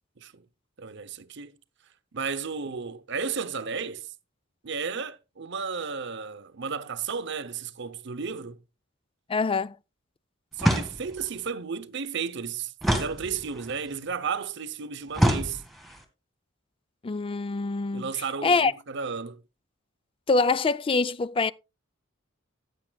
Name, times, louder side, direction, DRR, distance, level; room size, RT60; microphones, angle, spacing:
voice 1, 0.8-1.6 2.1-4.1 4.6-8.6 10.6-15.6 17.9-19.4, right 5 dB, 60° right, 0.8 m, -33 dB
voice 2, 9.3-9.7 17.0-18.1 18.4-18.7 20.3-21.5, left 4 dB, 25° left, 0.4 m, -24 dB
sound 1, 10.6-11.3 12.8-13.8 15.1-16.0, equal, ahead, 2.0 m, -26 dB
15.0 x 9.5 x 2.3 m
head